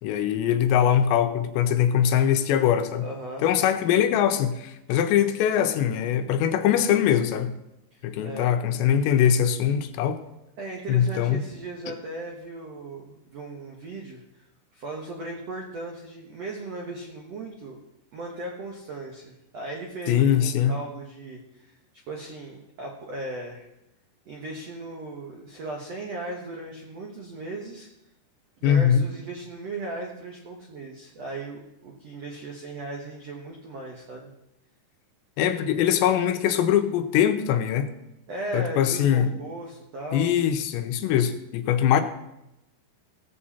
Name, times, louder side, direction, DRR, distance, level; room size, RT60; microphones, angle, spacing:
voice 1, 0.0-3.1 3.4-7.5 8.0-10.2 10.9-11.4 20.1-20.7 28.6-29.1 35.4-37.9 38.5-39.3 40.1-42.0, left 9 dB, 85° left, 8 dB, 3.0 m, -22 dB
voice 2, 3.0-3.4 7.9-8.5 10.6-14.4 14.7-17.8 18.1-21.7 22.1-23.7 24.3-27.9 28.6-34.3 38.3-40.3, right 2 dB, 85° right, 0 dB, 1.4 m, -37 dB
16.5 x 7.6 x 4.3 m, 0.87 s
omnidirectional pair, 5.0 m